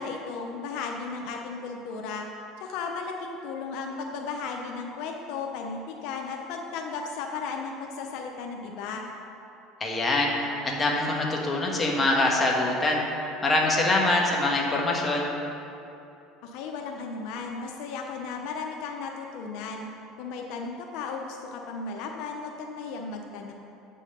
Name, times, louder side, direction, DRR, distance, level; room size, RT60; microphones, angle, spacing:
voice 1, 0.0-2.3 2.6-9.1 16.4-19.9 20.2-23.5, left 4 dB, 70° left, 2 dB, 0.7 m, -35 dB
voice 2, 9.8-10.3 10.6-13.0 13.4-15.3, left 2 dB, 20° left, -2 dB, 1.4 m, -24 dB
8.3 x 5.6 x 5.5 m, 2.8 s
supercardioid pair, 120°, 0 cm